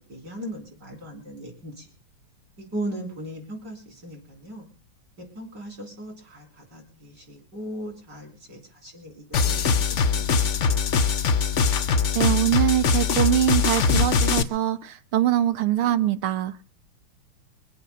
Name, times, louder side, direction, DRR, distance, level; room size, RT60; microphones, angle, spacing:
voice 1, 0.1-1.9 2.6-4.7 5.4-6.5 6.7-10.2, right 1 dB, 50° right, 0 dB, 5.0 m, -37 dB
sound 1, 9.3-14.4, left 5 dB, 50° left, 0.9 m, -22 dB
voice 2, 12.1-16.5, right 12 dB, 90° right, 13 dB, 2.0 m, -23 dB
23.0 x 8.0 x 6.9 m, 0.36 s
omnidirectional pair, 2.3 m